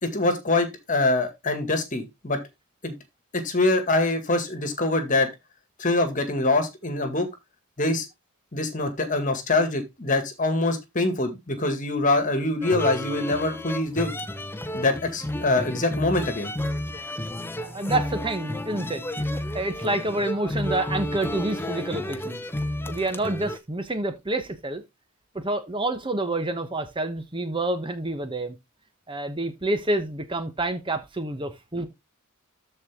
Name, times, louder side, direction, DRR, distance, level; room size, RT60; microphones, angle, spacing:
voice 1, 0.0-2.4 2.8-2.9 3.3-5.3 5.8-7.3 7.8-8.1 8.5-14.1 14.7-16.5, left 2 dB, 35° left, 2.1 m, -24 dB
sound 1, 12.6-23.6, left 1 dB, 10° left, 0.8 m, -32 dB
voice 2, 17.6-19.0 19.3-22.4 22.9-24.8 25.3-28.6 29.1-31.9, right 2 dB, 25° right, 1.0 m, -28 dB
13.5 x 4.7 x 3.6 m
head